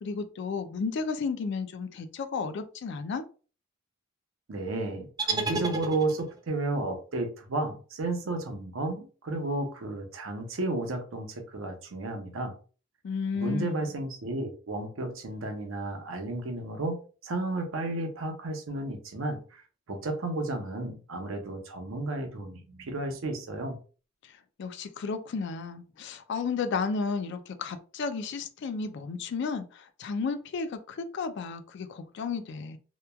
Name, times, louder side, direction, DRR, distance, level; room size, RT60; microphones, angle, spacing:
voice 1, 0.0-3.3 13.0-13.9 24.2-32.8, left 4 dB, 60° left, 9 dB, 0.3 m, -33 dB
voice 2, 4.5-12.5 13.3-19.6 19.9-23.8, right 2 dB, 80° right, 4 dB, 0.6 m, -33 dB
sound 1, 5.2-6.5, right 4 dB, 20° right, 0.3 m, -31 dB
2.9 x 2.2 x 2.2 m, 0.37 s
head